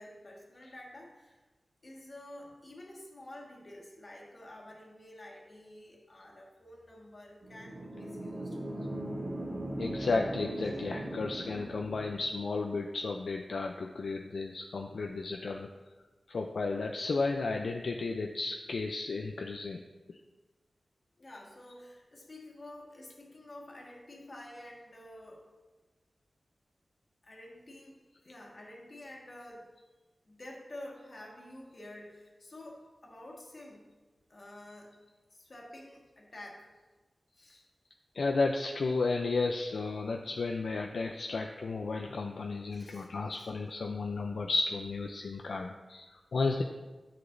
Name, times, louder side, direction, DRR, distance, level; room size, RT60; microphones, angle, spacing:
voice 1, 0.0-1.4 1.8-8.6 21.2-25.4 27.2-28.0 28.2-29.7 30.3-33.9 34.3-35.0 35.3-36.7 37.4-37.6 42.7-43.5, left 1 dB, 55° left, -2 dB, 1.6 m, -49 dB
sound 1, 7.4-12.4, right 1 dB, 70° right, 1.6 m, -39 dB
voice 2, 9.8-15.7 16.3-19.8 38.1-46.6, left 3 dB, 80° left, 2 dB, 0.4 m, -33 dB
9.6 x 5.9 x 2.6 m, 1.2 s
cardioid pair, 45°, 0 cm